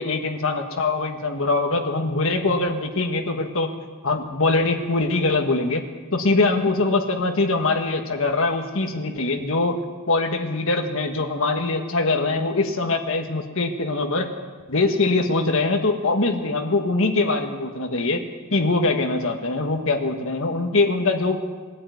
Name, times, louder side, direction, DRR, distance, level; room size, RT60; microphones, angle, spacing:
voice 1, 0.0-9.8 10.1-14.3 14.7-18.2 18.5-21.4, left 3 dB, 65° left, 4 dB, 1.6 m, -23 dB
20.5 x 13.5 x 9.5 m, 1.4 s
head